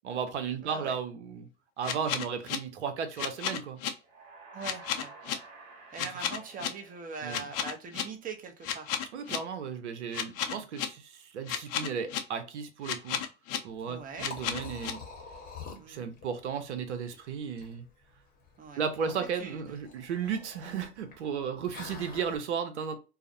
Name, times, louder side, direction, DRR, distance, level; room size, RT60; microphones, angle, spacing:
voice 1, 0.0-1.5 1.8-3.8 6.0-6.1 7.2-7.4 9.1-13.2 13.6-15.0 15.9-17.8 18.8-22.9, right 7 dB, 80° right, 0.7 m, -34 dB
voice 2, 0.6-1.0 4.5-5.1 5.9-8.9 10.4-10.6 13.8-14.3 15.8-16.0 18.6-18.8 19.3-19.6 20.6-20.8, right 5 dB, 25° right, 0.7 m, -42 dB
sound 1, 1.8-2.6 3.2-3.9 4.6-5.3 6.0-6.7 7.3-8.0 8.6-9.4 10.1-10.9 11.5-12.2 12.8-13.6 14.2-14.9, left 9 dB, 55° left, 0.5 m, -32 dB
sound 2, 4.0-7.9, right 3 dB, 55° right, 1.2 m, -51 dB
Liquid, 13.7-22.4, left 4 dB, 25° left, 0.9 m, -48 dB
2.4 x 2.0 x 2.6 m
hypercardioid pair, 90°, 34 cm